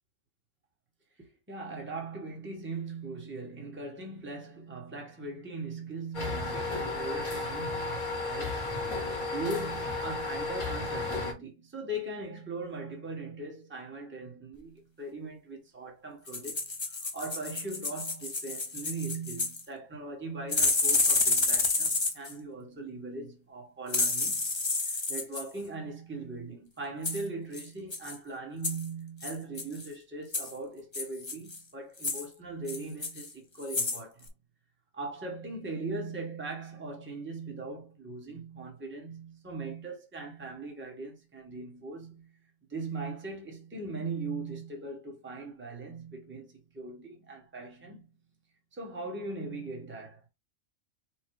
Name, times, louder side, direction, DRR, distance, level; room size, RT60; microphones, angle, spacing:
voice 1, 1.2-8.7 9.3-16.6 16.9-24.5 24.9-34.3 34.9-42.3 42.7-48.1 48.7-50.2, right 3 dB, 10° right, 1.1 m, -40 dB
sound 1, 6.1-11.3, left 3 dB, 85° left, 2.2 m, -33 dB
sound 2, 16.3-19.6 20.5-22.3 23.9-25.4 27.0-27.2 27.5-27.6 27.9-28.1 28.6-28.9 29.2-29.9 30.3-30.5 30.9-31.6 32.0-32.2 32.7-33.3 33.6-34.0 34.3-34.4, left 3 dB, 30° left, 0.5 m, -29 dB
4.6 x 2.3 x 4.7 m
omnidirectional pair, 1.5 m